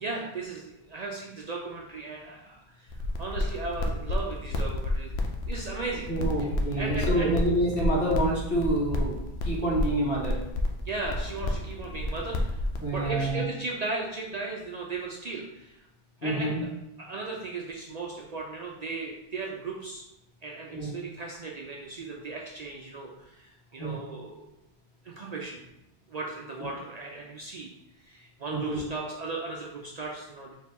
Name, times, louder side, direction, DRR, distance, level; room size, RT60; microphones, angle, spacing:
voice 1, 0.0-5.1 5.5-6.1 6.8-7.3 10.8-12.6 12.9-15.8 16.2-16.7 17.0-20.0 20.4-24.5 25.0-25.6 26.1-27.7 28.0-30.5, right 3 dB, 55° right, -1 dB, 0.5 m, -36 dB
sound 1, 2.9-13.3, left 1 dB, 85° left, 0.9 m, -31 dB
voice 2, 6.1-10.4 12.8-13.4 16.2-16.6 20.7-20.9 23.8-24.0 26.6-26.7 28.5-28.8, right 1 dB, 65° left, -3 dB, 1.3 m, -28 dB
4.3 x 2.8 x 3.4 m, 0.90 s
omnidirectional pair, 1.1 m